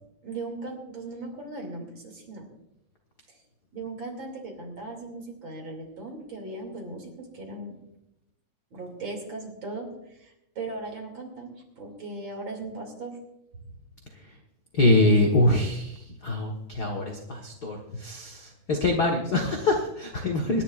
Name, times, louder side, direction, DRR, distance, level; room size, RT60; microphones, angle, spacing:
voice 1, 0.2-2.5 3.7-7.8 8.7-13.2, right 2 dB, 40° right, 1 dB, 2.9 m, -38 dB
voice 2, 14.7-20.6, left 2 dB, 65° left, 1 dB, 0.9 m, -24 dB
26.5 x 11.0 x 2.4 m, 0.86 s
omnidirectional pair, 3.8 m